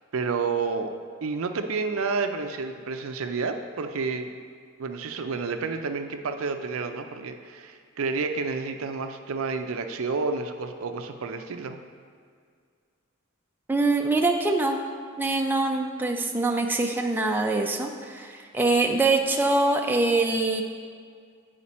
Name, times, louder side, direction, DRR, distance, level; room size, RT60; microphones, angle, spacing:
voice 1, 0.1-0.9 1.2-4.3 4.8-11.8, right 4 dB, 75° right, 7 dB, 0.5 m, -30 dB
voice 2, 13.7-14.8 15.2-20.6, right 2 dB, 10° right, 2 dB, 0.4 m, -24 dB
8.5 x 5.0 x 4.2 m, 2.1 s
head